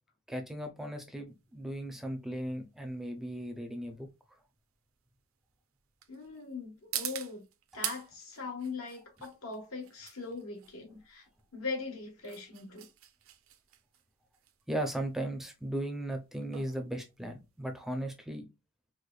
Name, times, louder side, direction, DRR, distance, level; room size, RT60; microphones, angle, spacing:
voice 1, 0.3-4.1 7.7-7.8 14.7-18.5, right 1 dB, ahead, 0.5 m, -37 dB
sound 1, 1.3-18.0, right 12 dB, 75° right, 0.5 m, -45 dB
voice 2, 6.1-7.4 7.7-11.2 11.5-12.8, left 4 dB, 85° left, 1.4 m, -40 dB
4.8 x 2.1 x 2.3 m
head